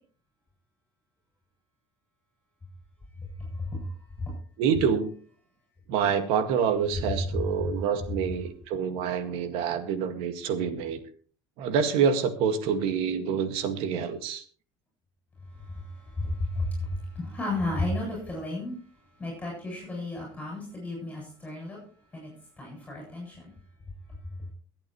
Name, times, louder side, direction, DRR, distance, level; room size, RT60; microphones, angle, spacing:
voice 1, 4.6-5.1 5.9-11.0 11.6-14.4, right 7 dB, 75° right, 8 dB, 1.9 m, -27 dB
voice 2, 16.2-18.7 19.2-21.8 22.1-22.3 22.6-23.5, left 2 dB, 15° left, -2 dB, 7.8 m, -33 dB
23.0 x 8.8 x 3.1 m, 0.43 s
cardioid pair, 135°, 10 cm